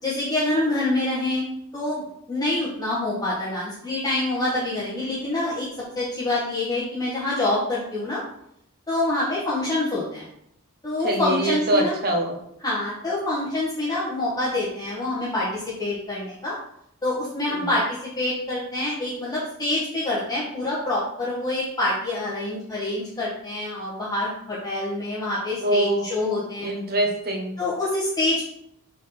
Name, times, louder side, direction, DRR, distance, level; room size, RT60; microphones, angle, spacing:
voice 1, 0.0-1.4 1.7-2.0 2.3-5.7 5.9-8.2 8.9-10.3 10.8-12.0 12.6-16.5 17.0-17.8 18.2-26.7 27.6-28.5, left 2 dB, 15° left, -8 dB, 1.4 m, -26 dB
voice 2, 11.0-12.3 17.5-17.7 25.6-26.0 26.6-27.5, right 1 dB, 45° right, 2 dB, 1.3 m, -24 dB
4.6 x 4.2 x 5.7 m, 0.74 s
head